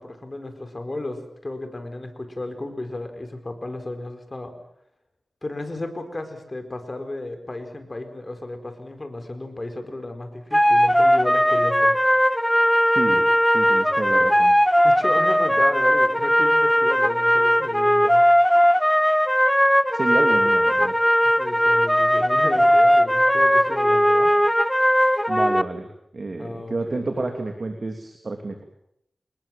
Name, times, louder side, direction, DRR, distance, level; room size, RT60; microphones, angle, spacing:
voice 1, 0.0-4.5 5.4-12.0 14.8-18.2 21.2-24.3 26.4-27.3, left 2 dB, 30° left, 7 dB, 4.7 m, -33 dB
sound 1, 10.5-25.6, equal, 5° left, 0.9 m, -18 dB
voice 2, 12.9-13.3 13.5-14.5 19.9-20.9 25.3-25.9 26.1-28.6, right 3 dB, 50° right, 4 dB, 3.1 m, -29 dB
27.5 x 21.0 x 7.5 m, 0.75 s
wide cardioid pair, 85°, 0 cm